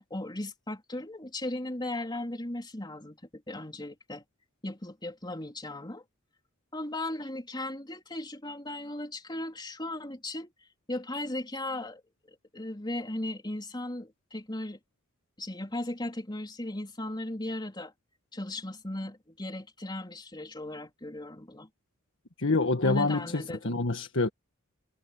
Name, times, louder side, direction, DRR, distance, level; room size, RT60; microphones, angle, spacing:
voice 1, 0.0-4.2 4.6-6.0 6.7-10.5 10.9-12.0 12.3-14.8 15.4-17.9 18.3-21.7 22.8-23.7, left 1 dB, 20° left, 3.9 m, -37 dB
voice 2, 22.4-24.3, left 3 dB, 65° left, 1.6 m, -27 dB
head